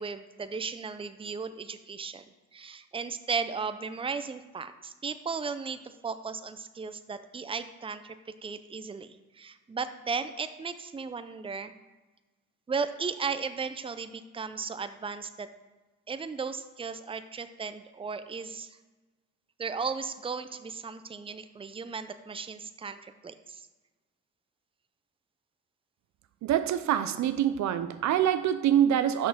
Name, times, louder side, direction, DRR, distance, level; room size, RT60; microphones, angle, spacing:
voice 1, 0.0-2.2 2.5-8.2 8.4-11.7 12.7-15.5 16.1-18.8 19.6-23.7, right 5 dB, 20° right, 0.5 m, -35 dB
voice 2, 26.4-29.3, right 10 dB, 65° right, 0.6 m, -25 dB
6.3 x 5.8 x 6.2 m
cardioid pair, 90°, 30 cm